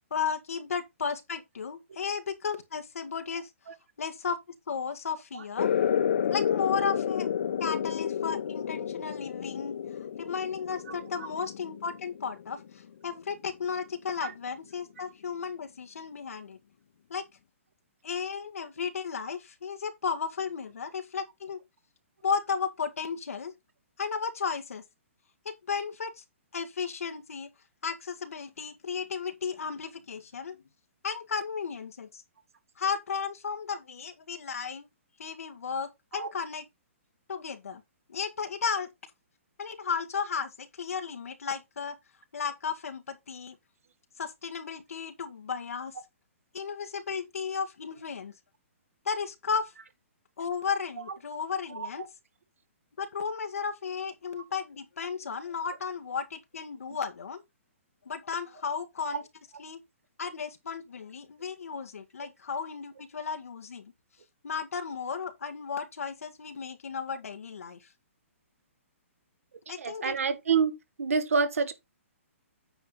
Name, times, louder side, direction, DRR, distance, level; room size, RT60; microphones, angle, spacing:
voice 1, 0.1-3.5 4.0-4.4 4.7-5.7 6.3-7.3 7.6-9.8 10.2-16.6 17.1-17.2 18.0-21.6 22.2-23.5 24.0-24.8 25.5-26.2 26.5-27.5 27.8-30.6 31.0-32.2 32.8-34.9 35.2-36.7 37.3-37.8 38.1-38.9 39.6-42.0 42.3-43.6 44.2-45.9 46.5-48.3 49.1-49.7 50.4-52.1 53.0-57.4 58.1-59.3 59.6-59.8 60.2-63.9 64.4-67.9 69.7-70.2, left 6 dB, 90° left, 1.9 m, -34 dB
sound 1, 5.6-12.7, left 8 dB, 55° left, 1.0 m, -30 dB
voice 2, 69.8-70.7 71.0-71.7, right 5 dB, 80° right, 2.0 m, -27 dB
9.1 x 5.8 x 3.9 m
hypercardioid pair, 175°, 7 cm